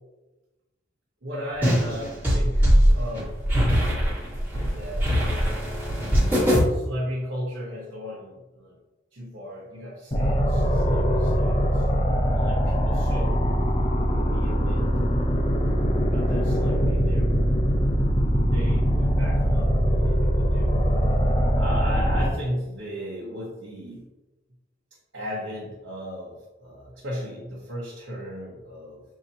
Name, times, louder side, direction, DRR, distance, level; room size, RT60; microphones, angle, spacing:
voice 1, 1.2-3.4 4.5-5.1 5.4-5.6 6.3-8.8 9.1-11.9 12.3-13.5 14.3-14.9 15.6-17.4 18.5-20.8 21.6-24.1 25.1-29.0, equal, 70° right, -6 dB, 1.2 m, -36 dB
sound 1, 1.6-6.6, equal, 10° right, 1.5 m, -21 dB
sound 2, 10.1-22.3, equal, 30° left, 0.6 m, -22 dB
6.8 x 2.8 x 2.8 m, 1.1 s
head